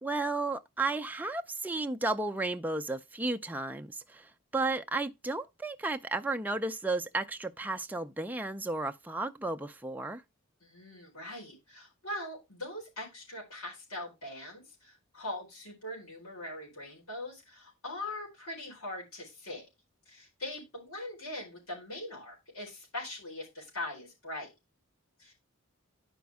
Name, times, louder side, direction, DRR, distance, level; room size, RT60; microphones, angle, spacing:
voice 1, 0.0-10.2, right 2 dB, 10° right, 0.4 m, -33 dB
voice 2, 10.6-19.7 20.1-24.5 25.2-25.3, left 1 dB, 90° left, 4.3 m, -41 dB
10.0 x 5.2 x 3.5 m
head